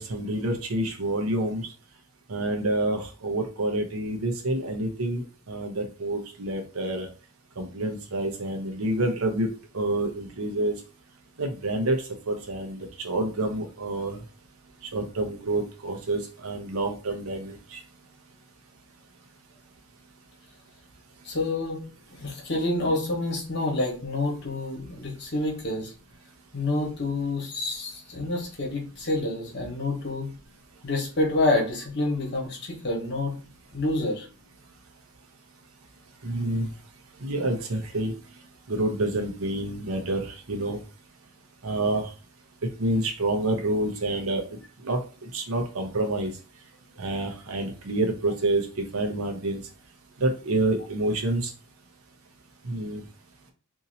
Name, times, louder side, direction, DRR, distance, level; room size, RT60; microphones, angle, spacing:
voice 1, 0.0-1.7 2.3-7.1 7.6-9.5 9.7-10.7 11.4-14.2 14.9-17.8 36.2-36.7 37.2-38.1 38.7-40.8 41.6-42.1 42.8-44.6 44.8-46.3 47.0-49.6 50.2-51.5 52.6-53.0, right 2 dB, 85° right, 4 dB, 0.8 m, -28 dB
voice 2, 21.2-21.8 22.2-25.9 26.5-30.3 30.8-33.3 33.7-34.3, left 2 dB, 50° left, 0 dB, 1.2 m, -28 dB
2.8 x 2.8 x 4.0 m, 0.35 s
head